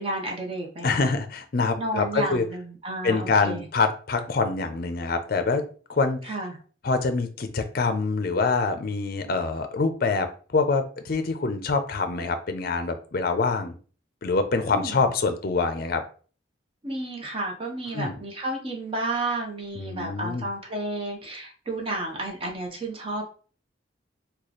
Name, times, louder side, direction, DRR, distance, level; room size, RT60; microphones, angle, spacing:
voice 1, 0.0-1.1 1.8-3.6 6.2-6.6 14.7-15.1 16.8-23.3, right 2 dB, 30° right, 0 dB, 0.9 m, -32 dB
voice 2, 0.8-2.4 3.0-5.6 5.9-6.3 6.8-13.8 14.2-16.0 17.9-18.1 19.7-20.4, left 4 dB, 55° left, 8 dB, 0.5 m, -25 dB
3.1 x 2.3 x 3.9 m, 0.40 s
head